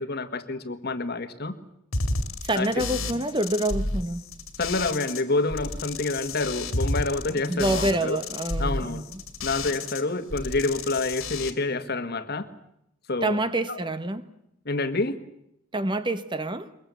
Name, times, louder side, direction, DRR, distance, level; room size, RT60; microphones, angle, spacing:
voice 1, 0.0-1.5 2.5-2.7 4.6-8.2 8.6-9.0 9.4-12.5 13.1-13.4 13.7-13.8 14.6-15.2, left 3 dB, 50° left, 10 dB, 1.6 m, -28 dB
sound 1, 1.9-5.2 5.5-10.0 10.3-11.5, left 2 dB, 85° left, 2.5 m, -31 dB
voice 2, 2.4-4.2 7.5-9.2 13.2-14.2 15.7-16.7, right 1 dB, 20° right, 11 dB, 1.1 m, -27 dB
22.5 x 22.0 x 8.3 m, 0.77 s
head